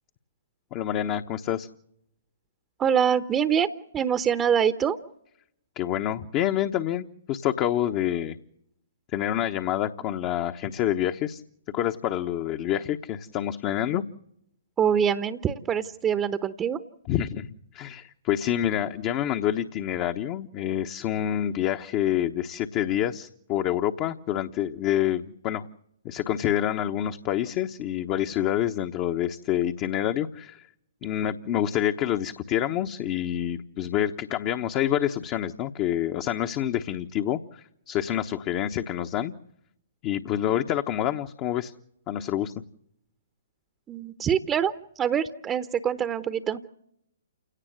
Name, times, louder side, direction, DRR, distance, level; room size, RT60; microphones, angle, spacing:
voice 1, 0.7-1.7 5.8-8.4 9.1-11.4 11.7-14.0 17.1-17.5 17.7-25.7 26.0-30.7 31.0-39.3 40.0-41.7 42.1-42.5, left 11 dB, 30° left, 7 dB, 1.0 m, -27 dB
voice 2, 2.8-5.0 14.8-16.8 43.9-46.6, right 8 dB, 20° right, 11 dB, 1.0 m, -25 dB
29.0 x 18.0 x 7.9 m, 0.77 s
figure-of-eight pair, 130°, 0 cm